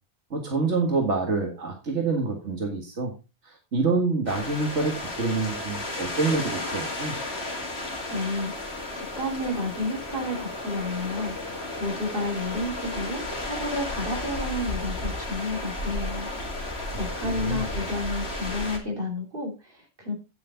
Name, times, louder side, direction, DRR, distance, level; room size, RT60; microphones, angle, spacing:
voice 1, 0.3-3.1 3.4-7.2 17.1-17.6, right 3 dB, 85° right, 2 dB, 2.1 m, -27 dB
sound 1, 4.3-18.8, left 2 dB, 65° left, 2.7 m, -33 dB
voice 2, 8.1-16.7 17.0-20.1, left 2 dB, 55° right, 1 dB, 3.2 m, -31 dB
9.2 x 8.5 x 4.0 m, 0.29 s
omnidirectional pair, 1.2 m